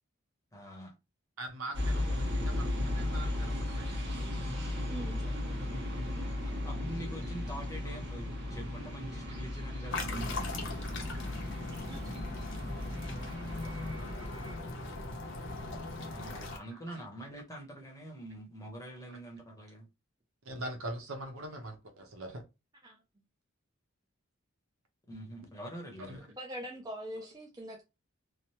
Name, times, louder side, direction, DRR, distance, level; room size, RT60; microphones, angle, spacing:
voice 1, 0.5-0.9 5.2-5.3 6.2-10.7 13.4-14.5 16.1-19.9 25.1-26.3, right 1 dB, 15° left, 0.8 m, -45 dB
voice 2, 1.4-4.5 7.8-8.0 12.0-12.3 13.7-13.8 16.6-17.0 19.1-19.2 20.4-22.4 26.1-26.2, right 1 dB, 80° right, 0.8 m, -43 dB
sound 1, 1.7-14.6, left 1 dB, 55° right, 0.9 m, -36 dB
voice 3, 4.9-5.2 11.7-12.0 22.8-23.0 26.4-27.8, right 1 dB, 20° right, 0.4 m, -43 dB
sound 2, 9.9-16.6, left 2 dB, 55° left, 0.6 m, -39 dB
3.1 x 2.0 x 2.8 m
head